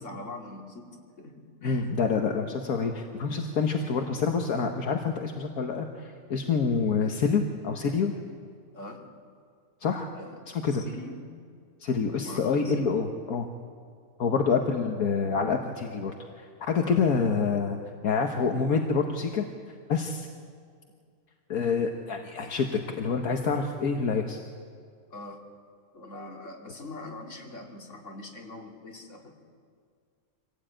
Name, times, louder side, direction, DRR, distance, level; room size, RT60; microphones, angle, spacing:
voice 1, 0.0-1.9 8.7-9.2 10.1-11.3 12.1-12.9 16.7-17.0 25.1-25.4 25.9-29.3, left 2 dB, 55° left, 0 dB, 3.1 m, -43 dB
voice 2, 1.6-8.1 9.8-10.1 10.5-10.8 11.8-13.5 14.2-17.8 18.0-19.5 19.9-20.3 21.5-24.4, left 5 dB, 75° left, 3 dB, 1.7 m, -27 dB
25.0 x 17.5 x 9.0 m, 2.1 s
omnidirectional pair, 1.6 m